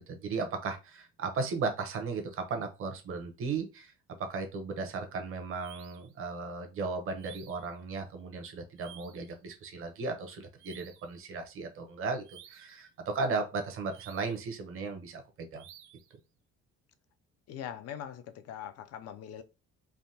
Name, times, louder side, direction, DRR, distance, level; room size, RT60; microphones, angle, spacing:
voice 1, 0.0-3.9 4.2-15.6, right 4 dB, 45° right, 0.8 m, -36 dB
sound 1, 5.6-6.1 7.2-7.7 8.8-9.3 10.6-11.2 12.2-12.8 13.9-14.5 15.6-16.1, right 11 dB, 85° right, 0.6 m, -54 dB
voice 2, 17.5-19.4, left 9 dB, 55° left, 0.5 m, -42 dB
3.4 x 2.1 x 2.7 m
cardioid pair, 130°, 29 cm